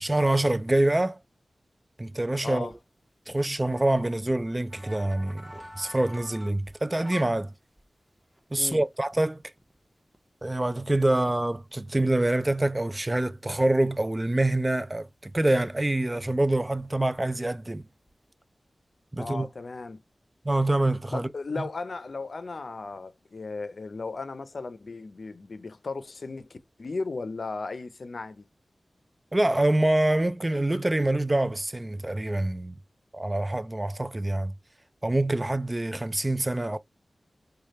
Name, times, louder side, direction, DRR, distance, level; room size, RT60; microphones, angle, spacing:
voice 1, 0.0-1.2 2.0-2.7 3.3-7.5 8.5-9.4 10.4-17.9 19.1-19.5 20.5-21.3 29.3-32.7 33.1-34.5 35.0-36.8, right 1 dB, 25° right, 0.3 m, -25 dB
voice 2, 2.4-2.7 8.6-8.8 19.2-20.0 21.1-28.4, left 3 dB, 65° left, 0.5 m, -36 dB
sound 1, 2.7-7.4 7.8-7.9 8.3-9.8 10.1-10.2 10.7-10.8 11.1-12.6 13.1-13.2 13.4-13.9 14.5-14.7 15.3-15.4 15.8-16.9 17.1-17.5 17.8-18.3, equal, 10° right, 1.0 m, -48 dB
3.2 x 2.3 x 4.1 m
cardioid pair, 50°, 0 cm